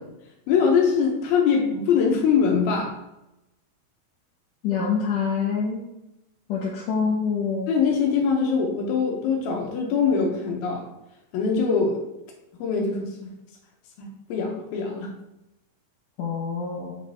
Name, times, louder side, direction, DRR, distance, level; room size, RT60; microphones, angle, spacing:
voice 1, 0.5-2.9 7.7-10.9 11.3-12.0 12.6-13.1 14.0-15.1, left 5 dB, 85° left, 0 dB, 2.9 m, -22 dB
voice 2, 4.6-5.8 6.5-7.7 16.2-16.9, left 6 dB, 70° left, -5 dB, 2.4 m, -26 dB
7.3 x 4.8 x 3.5 m, 0.90 s
omnidirectional pair, 4.2 m